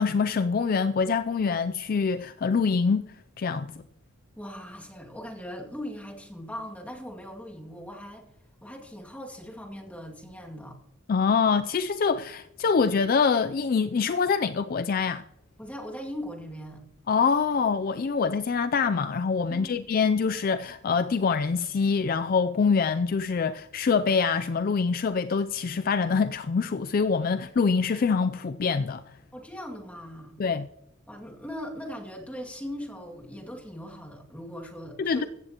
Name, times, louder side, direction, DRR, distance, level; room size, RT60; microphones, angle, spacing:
voice 1, 0.0-3.1 3.4-3.7 11.1-15.2 17.1-29.0 30.4-30.7 35.0-35.2, left 5 dB, 45° left, 0.4 m, -25 dB
voice 2, 4.4-8.2 8.6-10.8 15.6-16.8 19.5-19.8 29.3-30.4 31.1-35.3, equal, 5° left, 2.2 m, -40 dB
15.5 x 14.0 x 2.9 m
head